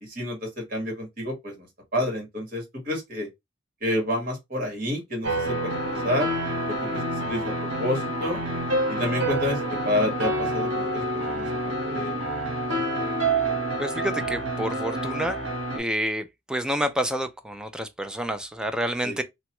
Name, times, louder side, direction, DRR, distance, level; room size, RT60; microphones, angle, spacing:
voice 1, 0.0-3.3 3.8-5.6 5.8-6.3 6.7-8.4 8.9-12.2 19.0-19.2, left 1 dB, 50° right, 1.6 m, -29 dB
sound 1, 5.2-15.8, right 1 dB, 70° right, 1.1 m, -28 dB
voice 2, 13.8-15.4 15.8-19.2, right 1 dB, 5° right, 0.3 m, -28 dB
2.9 x 2.2 x 2.9 m
head